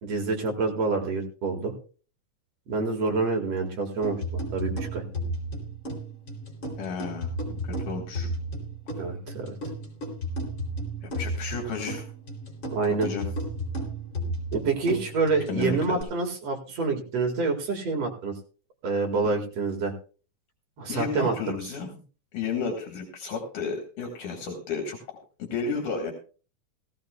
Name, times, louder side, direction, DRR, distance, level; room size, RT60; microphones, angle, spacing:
voice 1, 0.0-1.7 2.7-4.2 4.5-5.0 9.0-9.6 12.7-13.1 14.5-18.3 18.8-19.9 20.8-21.3, right 4 dB, 55° right, 3 dB, 2.7 m, -27 dB
sound 1, 4.0-16.0, right 1 dB, 35° left, 3.6 m, -34 dB
voice 2, 6.8-7.3 7.6-8.3 11.0-12.0 12.9-13.3 15.5-16.0 20.9-22.0 22.3-26.1, left 5 dB, 75° left, 2 dB, 3.1 m, -32 dB
17.0 x 15.0 x 2.3 m, 0.38 s
omnidirectional pair, 3.6 m